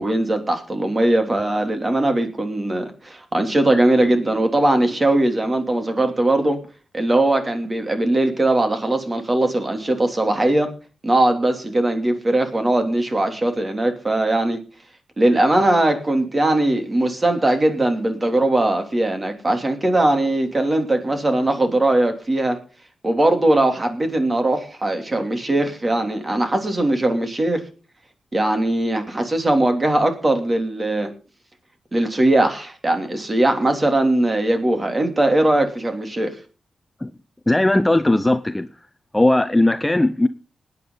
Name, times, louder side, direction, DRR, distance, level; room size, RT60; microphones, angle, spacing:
voice 1, 0.0-6.6 6.9-10.7 11.0-14.6 15.2-22.6 23.0-27.6 28.3-31.1 31.9-36.4, right 1 dB, 30° right, 6 dB, 3.0 m, -20 dB
voice 2, 37.5-38.7 39.1-40.3, left 1 dB, 15° left, 12 dB, 0.7 m, -18 dB
20.5 x 9.7 x 4.0 m, 0.36 s
cardioid pair, 75°, 0 cm